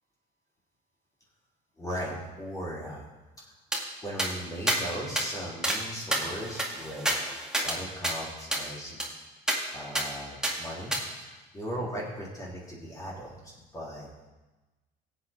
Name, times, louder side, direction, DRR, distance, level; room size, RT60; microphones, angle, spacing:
voice 1, 1.8-3.0 4.0-7.1 7.6-9.0 9.7-10.9 11.3-14.1, equal, 20° left, -5 dB, 3.4 m, -37 dB
sound 1, 3.7-3.8 4.2-4.3 4.7-4.8 5.2-5.3 5.6-5.8 6.1-7.8 8.0-8.1 8.5-8.6 9.0-9.1 9.5-9.6 9.9-10.1 10.4-10.5 10.9-11.0, right 1 dB, 5° right, 2.3 m, -28 dB
17.0 x 8.5 x 3.6 m, 1.1 s
cardioid pair, 110°, 17 cm